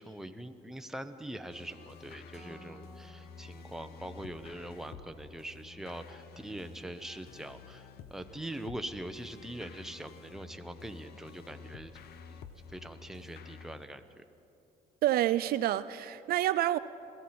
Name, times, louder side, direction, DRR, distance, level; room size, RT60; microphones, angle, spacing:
voice 1, 0.0-11.9 12.3-12.4 12.7-14.2, right 1 dB, ahead, 0.8 m, -43 dB
sound 1, 1.5-13.8, left 6 dB, 70° left, 0.8 m, -51 dB
sound 2, 2.3-4.4, right 1 dB, 40° left, 4.4 m, -55 dB
voice 2, 15.0-16.8, right 13 dB, 65° right, 0.4 m, -28 dB
22.0 x 15.5 x 4.3 m
cardioid pair, 110°, 17 cm